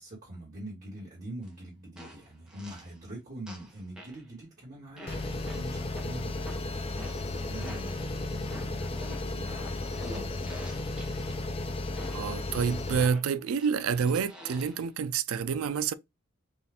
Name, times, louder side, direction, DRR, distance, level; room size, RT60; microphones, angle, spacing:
voice 1, 0.0-10.7, right 1 dB, 35° right, 1.8 m, -44 dB
sound 1, 1.4-1.5 2.0-3.0 3.5-4.2 5.0-8.1 8.5-11.4 12.0-12.4 13.0-14.9, equal, 5° right, 0.8 m, -48 dB
sound 2, 5.1-13.1, left 2 dB, 25° left, 0.4 m, -34 dB
voice 2, 12.1-15.9, right 6 dB, 80° right, 0.4 m, -28 dB
4.5 x 2.5 x 3.4 m
head